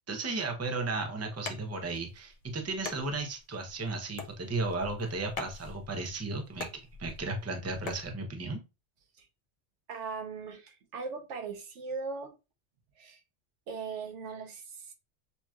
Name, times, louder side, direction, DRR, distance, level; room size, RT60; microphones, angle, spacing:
voice 1, 0.1-6.7 7.0-8.6, right 3 dB, 15° right, 0.6 m, -34 dB
sound 1, 1.3-8.1, left 4 dB, 50° left, 0.5 m, -44 dB
voice 2, 9.9-12.3 13.0-13.2 13.7-14.9, right 4 dB, 80° right, 1.2 m, -39 dB
6.9 x 2.9 x 2.3 m
omnidirectional pair, 1.2 m